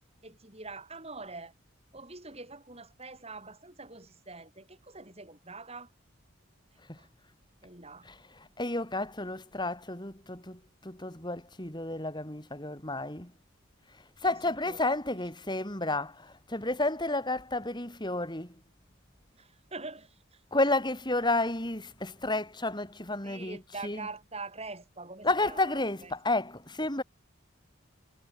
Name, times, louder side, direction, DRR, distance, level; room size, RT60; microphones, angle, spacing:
voice 1, 0.2-1.5 1.9-5.9 7.0-7.1 7.6-8.1 14.2-14.4 14.6-14.8 19.4-20.4 23.2-26.1, right 3 dB, 30° right, 6.5 m, -44 dB
voice 2, 8.0-13.3 14.2-18.5 20.5-24.1 25.2-27.0, left 2 dB, 20° left, 4.0 m, -31 dB
head